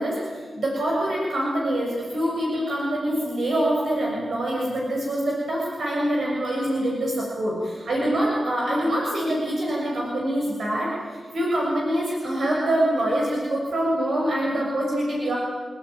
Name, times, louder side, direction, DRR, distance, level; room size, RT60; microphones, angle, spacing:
voice 1, 0.0-15.4, right 1 dB, 70° right, -3 dB, 7.0 m, -25 dB
29.5 x 17.0 x 9.5 m, 1.5 s
cardioid pair, 70°, 0 cm